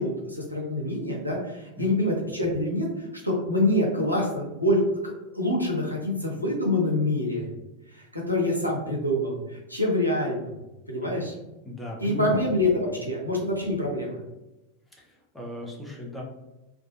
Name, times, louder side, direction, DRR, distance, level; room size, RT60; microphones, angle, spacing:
voice 1, 0.0-7.5 7.9-10.5 10.9-11.3 12.0-14.2, left 1 dB, 90° right, -2 dB, 0.6 m, -26 dB
voice 2, 11.6-12.4 15.0-16.2, left 2 dB, 5° left, -3 dB, 0.6 m, -37 dB
2.5 x 2.2 x 2.4 m, 0.98 s
figure-of-eight pair, 90°, 0 cm